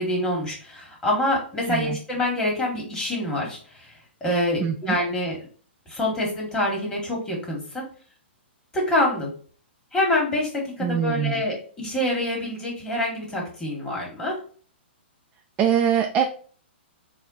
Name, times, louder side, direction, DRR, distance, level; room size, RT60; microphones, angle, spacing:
voice 1, 0.0-5.4 5.9-7.9 8.7-9.3 9.9-14.4, left 1 dB, 15° left, -2 dB, 1.5 m, -26 dB
voice 2, 1.6-2.0 4.6-5.0 10.8-11.5 15.6-16.2, right 8 dB, 20° right, 3 dB, 0.3 m, -23 dB
4.2 x 2.2 x 3.9 m, 0.43 s
hypercardioid pair, 130°, 6 cm